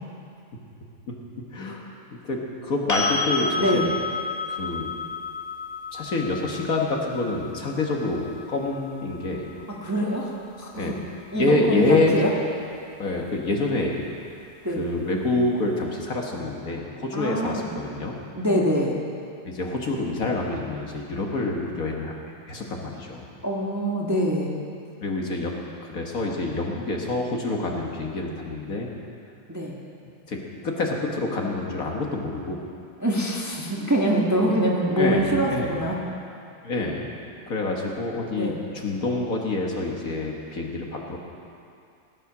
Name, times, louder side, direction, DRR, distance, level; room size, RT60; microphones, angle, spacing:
voice 1, 1.5-2.4 2.6-3.9 4.5-4.9 5.9-9.5 10.7-10.9 11.3-12.1 13.0-14.0 14.7-18.2 19.5-22.1 22.5-23.3 25.0-25.5 25.8-28.9 30.3-30.4 30.6-32.6 34.9-35.8 36.6-37.1 37.5-41.2, left 2 dB, 55° left, 0 dB, 1.8 m, -27 dB
sound 1, 2.9-10.7 13.5-13.6, left 4 dB, 10° left, 2.1 m, -32 dB
voice 2, 3.5-3.9 9.8-10.3 10.6-11.0 11.3-12.3 14.6-14.8 17.1-17.6 18.4-19.0 23.4-24.5 29.5-29.8 33.0-36.0 38.4-38.6, equal, 10° right, -3 dB, 1.2 m, -24 dB
17.0 x 10.0 x 6.1 m, 2.5 s
omnidirectional pair, 1.9 m